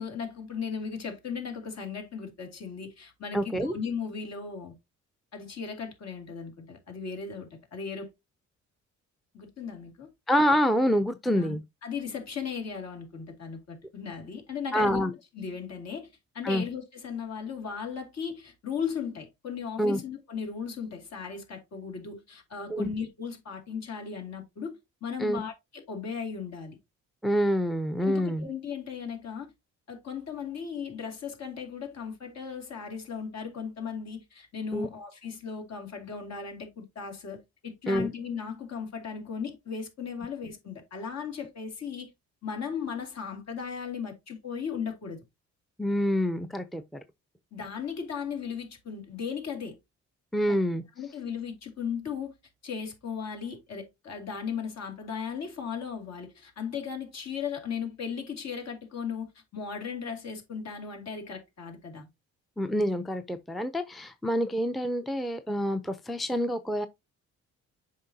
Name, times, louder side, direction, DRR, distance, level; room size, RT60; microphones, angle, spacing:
voice 1, 0.0-4.7 5.3-8.1 9.3-10.1 11.4-11.6 11.8-15.0 15.3-16.1 16.3-26.8 28.0-29.5 29.9-42.1 42.4-45.2 47.5-49.8 50.5-50.6 51.0-52.3 52.6-62.1, left 6 dB, 60° left, 2.5 m, -36 dB
voice 2, 3.3-3.7 10.3-11.6 14.7-15.1 16.4-16.6 19.8-20.0 22.7-22.9 25.2-25.4 27.2-28.5 34.7-34.9 37.9-38.1 45.8-46.8 50.3-50.8 62.6-66.9, equal, ahead, 0.6 m, -27 dB
7.4 x 5.2 x 2.8 m
cardioid pair, 90°, 30 cm